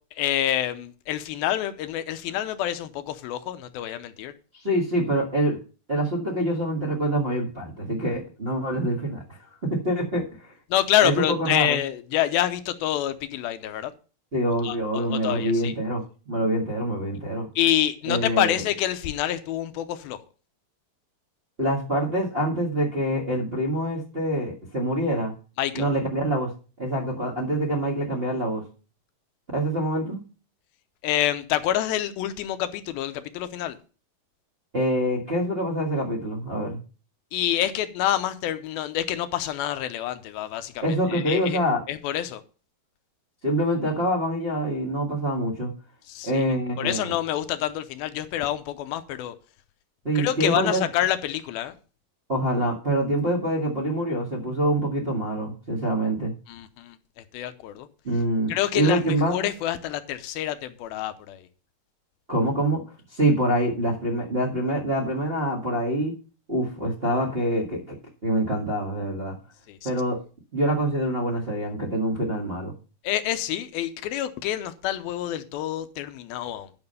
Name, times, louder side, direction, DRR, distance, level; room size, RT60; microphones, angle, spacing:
voice 1, 0.2-4.3 10.7-13.9 14.6-15.7 17.6-20.2 25.6-25.9 31.0-33.8 37.3-40.8 41.1-41.6 41.9-42.4 46.1-46.4 46.8-49.4 50.2-51.7 56.5-57.0 57.3-57.9 58.5-61.5 69.7-69.9 73.0-76.7, left 12 dB, 80° left, 2.5 m, -27 dB
voice 2, 4.5-5.6 5.9-10.5 11.0-11.8 14.3-17.5 18.1-18.6 21.6-25.3 25.7-26.5 26.8-28.6 29.5-30.2 34.7-36.8 40.8-41.8 43.4-45.7 46.2-47.1 50.0-50.9 52.3-56.3 58.0-59.5 62.3-62.8 63.1-66.1 66.5-68.0 68.2-69.4 69.8-70.2 70.5-72.7, right 1 dB, 55° right, 0.6 m, -25 dB
11.0 x 5.8 x 5.5 m
omnidirectional pair, 4.5 m